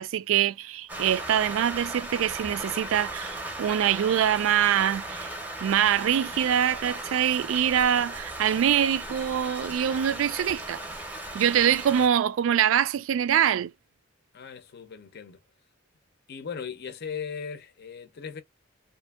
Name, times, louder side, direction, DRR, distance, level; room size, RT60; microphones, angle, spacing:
voice 1, 0.0-5.3 5.6-10.8 11.3-13.7, right 9 dB, 75° right, 0.3 m, -24 dB
Rain, 0.9-12.1, right 1 dB, 10° right, 0.6 m, -37 dB
voice 2, 14.3-15.4 16.3-18.4, left 6 dB, 55° left, 0.5 m, -38 dB
2.6 x 2.5 x 2.3 m
head